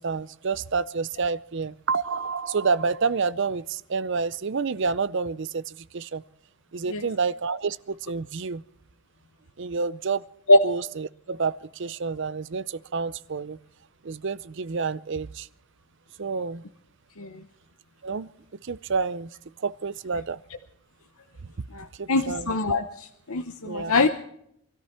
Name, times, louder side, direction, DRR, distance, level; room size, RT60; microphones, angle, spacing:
voice 1, 0.0-6.2 6.7-8.6 9.6-10.2 10.6-13.6 14.0-15.5 16.2-16.6 18.0-18.3 18.6-19.3 19.6-20.4 22.0-22.6 23.6-23.9, right 5 dB, 55° right, 18 dB, 0.5 m, -29 dB
voice 2, 21.7-24.1, left 2 dB, 75° left, 6 dB, 0.9 m, -22 dB
24.5 x 13.5 x 4.4 m, 0.72 s
head